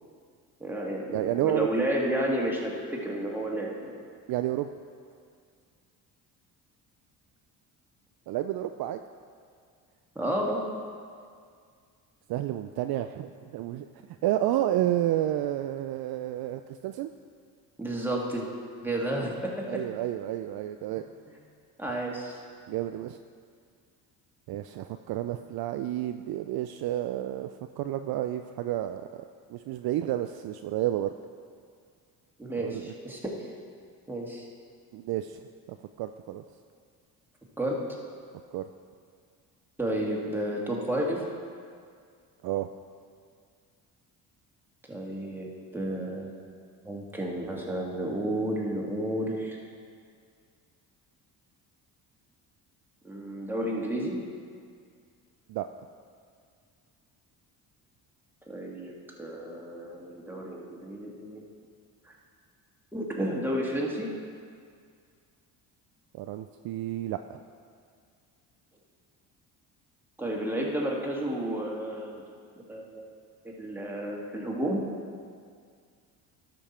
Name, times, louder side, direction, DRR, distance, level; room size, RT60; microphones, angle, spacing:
voice 1, 0.6-3.9 10.2-10.6 17.8-18.5 18.8-19.8 21.8-22.4 32.4-33.5 34.1-34.5 37.6-37.7 39.8-41.2 44.9-46.3 46.8-49.6 53.0-54.2 58.5-58.9 59.2-61.4 62.0-62.1 62.9-64.1 70.2-72.2 72.7-73.1 73.4-74.8, right 1 dB, 5° right, -3 dB, 2.0 m, -31 dB
voice 2, 1.1-1.7 4.3-4.7 8.3-9.0 12.3-13.9 14.2-17.1 19.7-21.0 22.7-23.2 24.5-29.2 29.5-31.1 32.6-32.9 34.9-35.4 35.7-36.4 38.5-38.7 42.4-42.7 55.5-55.7 66.1-67.4, right 13 dB, 55° right, 8 dB, 0.5 m, -30 dB
12.5 x 5.4 x 4.4 m, 2.1 s
supercardioid pair, 65°, 44 cm